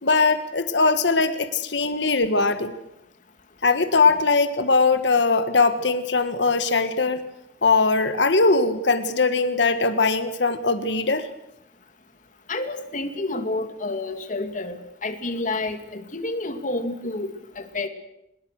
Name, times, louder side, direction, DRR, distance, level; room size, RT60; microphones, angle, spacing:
voice 1, 0.0-2.7 3.6-7.2 7.6-11.3, left 4 dB, 75° left, 10 dB, 1.7 m, -20 dB
voice 2, 12.5-17.3 17.6-17.9, left 2 dB, 45° left, 8 dB, 2.3 m, -29 dB
24.5 x 21.0 x 6.5 m, 0.83 s
head